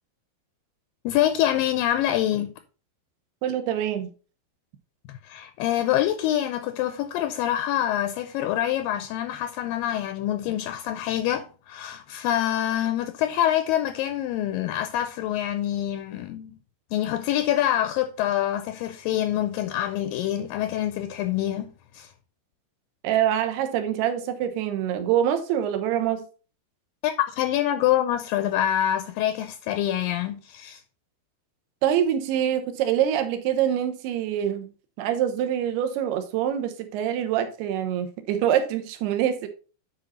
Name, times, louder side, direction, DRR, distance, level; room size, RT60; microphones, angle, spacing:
voice 1, 1.1-2.5 5.1-16.6 16.9-22.1 27.0-30.8, left 12 dB, 80° left, 2.0 m, -26 dB
voice 2, 3.4-4.1 23.0-26.2 31.8-34.7 35.0-39.5, right 10 dB, 80° right, 3.0 m, -25 dB
9.0 x 5.0 x 4.1 m
omnidirectional pair, 4.6 m